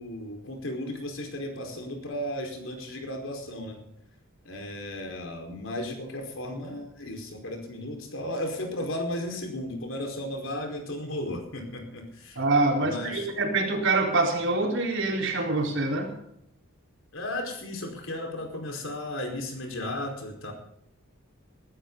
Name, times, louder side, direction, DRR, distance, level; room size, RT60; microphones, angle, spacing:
voice 1, 0.0-3.8 4.4-12.4 12.8-13.3 17.1-20.5, left 1 dB, 70° left, 3 dB, 4.8 m, -35 dB
voice 2, 12.4-16.1, right 2 dB, 65° right, 1 dB, 4.4 m, -25 dB
19.5 x 13.5 x 4.0 m, 0.73 s
head